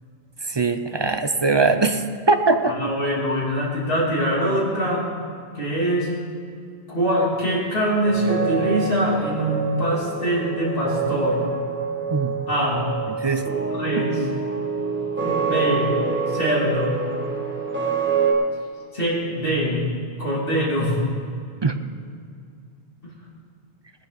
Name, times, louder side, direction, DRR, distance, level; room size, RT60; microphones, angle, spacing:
voice 1, 0.5-2.8 12.1-12.3 13.2-13.4 21.6-21.7, right 3 dB, 35° right, 8 dB, 0.5 m, -21 dB
voice 2, 2.7-5.1 5.5-6.1 6.9-11.5 12.5-12.9 13.8-14.3 15.2-15.9 16.3-17.0 18.9-19.8 20.2-21.0 23.0-23.1, equal, 55° left, -5 dB, 3.3 m, -23 dB
sound 1, 8.0-18.3, right 5 dB, 10° right, 1.8 m, -26 dB
18.5 x 10.0 x 4.1 m, 2.3 s
omnidirectional pair, 1.1 m